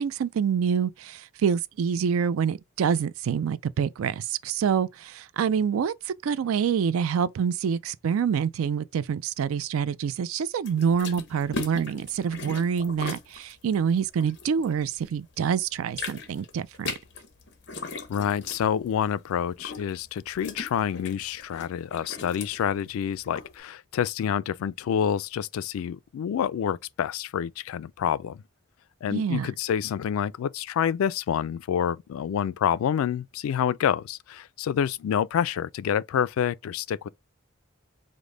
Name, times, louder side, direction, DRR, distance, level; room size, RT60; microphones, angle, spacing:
voice 1, 0.0-16.9 29.1-29.5, right 7 dB, 85° right, 0.3 m, -26 dB
sound 1, 10.7-15.2 15.5-23.5, left 4 dB, 55° left, 0.8 m, -39 dB
voice 2, 18.1-28.4 29.0-37.1, left 8 dB, 90° left, 0.3 m, -28 dB
5.1 x 2.1 x 3.8 m
head